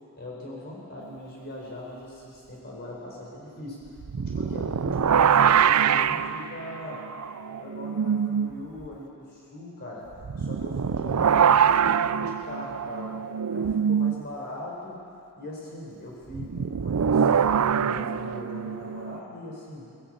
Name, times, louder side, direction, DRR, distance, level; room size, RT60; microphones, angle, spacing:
voice 1, 0.2-3.9 4.2-7.0 7.6-10.1 10.4-13.2 13.5-15.0 15.4-17.3 17.7-19.9, left 1 dB, 50° left, -3 dB, 4.3 m, -40 dB
sound 1, 4.0-8.5 8.8-8.9 10.2-14.2 16.3-19.2, right 7 dB, 85° right, 0.5 m, -24 dB
19.5 x 16.5 x 8.9 m, 2.6 s
head